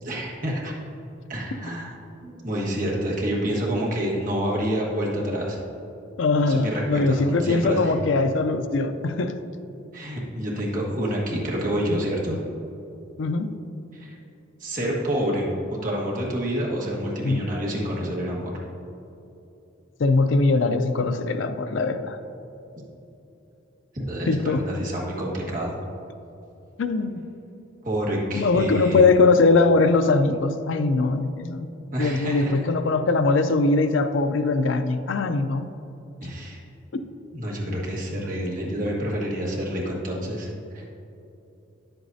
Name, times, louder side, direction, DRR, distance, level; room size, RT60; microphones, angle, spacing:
voice 1, 0.0-0.7 1.3-1.9 2.2-5.6 6.4-7.9 9.9-12.4 13.9-14.1 14.6-18.5 24.1-25.7 27.8-29.0 31.9-32.6 36.2-36.6 37.3-40.5 40.7-40.8, equal, 45° right, -4 dB, 1.6 m, -28 dB
voice 2, 6.2-9.4 13.2-13.5 17.2-17.4 20.0-22.2 24.3-24.6 26.8-27.2 28.3-31.7 32.0-35.7, left 3 dB, 75° left, 9 dB, 0.5 m, -21 dB
9.9 x 7.9 x 2.7 m, 2.9 s
head